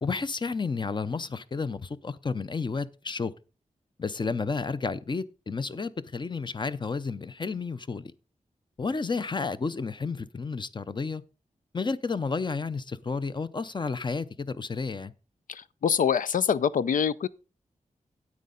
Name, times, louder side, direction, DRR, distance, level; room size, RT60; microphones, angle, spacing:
voice 1, 0.0-3.3 4.0-8.1 8.8-11.2 11.7-15.1, left 4 dB, 35° left, 0.6 m, -31 dB
voice 2, 15.5-17.3, left 7 dB, 85° left, 0.5 m, -25 dB
9.6 x 8.5 x 3.9 m
wide cardioid pair, 110°, 13 cm